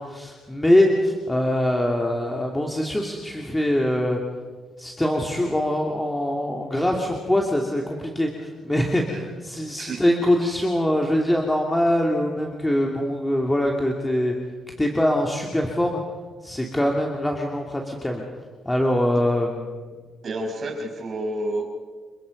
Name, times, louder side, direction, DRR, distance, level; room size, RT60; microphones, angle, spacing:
voice 1, 0.0-4.2 4.8-14.3 14.8-16.0 16.4-18.2 18.6-19.8, left 1 dB, 10° left, 0 dB, 2.8 m, -23 dB
voice 2, 20.2-21.8, right 1 dB, 50° right, 2 dB, 6.0 m, -30 dB
29.0 x 23.0 x 5.4 m, 1.4 s
cardioid pair, 90°, 0 cm